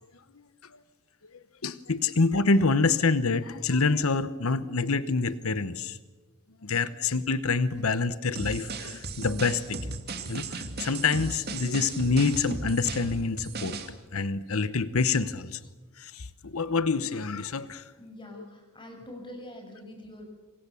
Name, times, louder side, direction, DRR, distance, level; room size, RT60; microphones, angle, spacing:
voice 1, 1.6-6.0 6.6-10.0 10.3-15.6 16.0-17.8 18.4-18.5, left 4 dB, 80° left, 14 dB, 1.0 m, -27 dB
sound 1, 8.4-13.9, right 3 dB, 50° right, 2.6 m, -36 dB
voice 2, 18.0-20.2, left 1 dB, 25° left, 3 dB, 6.4 m, -44 dB
27.0 x 26.5 x 7.1 m, 1.3 s
head